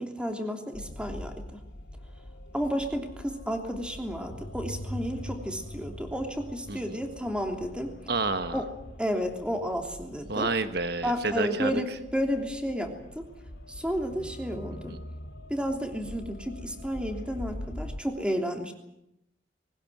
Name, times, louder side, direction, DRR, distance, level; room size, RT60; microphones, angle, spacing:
voice 1, 0.0-1.6 2.5-8.0 8.5-8.7 9.0-10.5 11.0-13.3 13.7-14.9 15.5-18.7, equal, 5° right, 4 dB, 3.1 m, -32 dB
sound 1, 0.7-18.0, left 1 dB, 70° left, 2.1 m, -43 dB
voice 2, 8.1-8.6 10.3-11.8 14.9-15.0, right 3 dB, 65° right, 9 dB, 1.2 m, -29 dB
21.0 x 19.0 x 9.3 m, 0.83 s
head